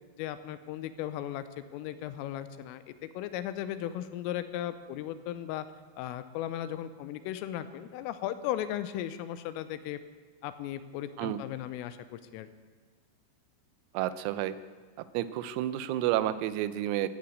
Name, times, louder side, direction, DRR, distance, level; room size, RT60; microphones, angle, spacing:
voice 1, 0.2-5.7 6.0-10.0 10.4-12.5, left 12 dB, 85° left, 12 dB, 3.3 m, -36 dB
voice 2, 13.9-14.6 15.0-17.1, right 13 dB, 90° right, 14 dB, 3.5 m, -30 dB
15.5 x 9.6 x 8.6 m, 1.5 s
omnidirectional pair, 6.0 m